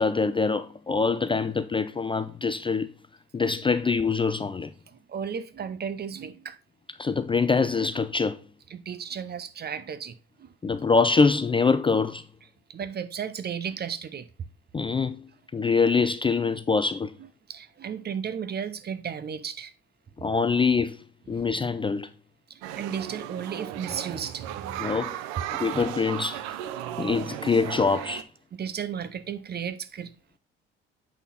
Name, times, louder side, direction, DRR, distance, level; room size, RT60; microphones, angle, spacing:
voice 1, 0.0-2.9 3.3-4.7 7.0-8.4 10.6-12.2 14.7-15.2 15.5-17.1 20.2-21.0 21.3-22.1 24.8-25.2 25.5-26.4 27.0-28.3, left 4 dB, 15° left, 0.4 m, -24 dB
voice 2, 4.9-6.6 8.7-10.5 12.7-14.3 17.5-19.7 21.3-21.5 22.5-24.8 27.0-27.1 28.5-30.1, right 7 dB, 35° right, 0.7 m, -34 dB
sound 1, 22.6-28.2, right 12 dB, 70° right, 0.6 m, -35 dB
8.1 x 4.3 x 4.0 m
hypercardioid pair, 55°, 30 cm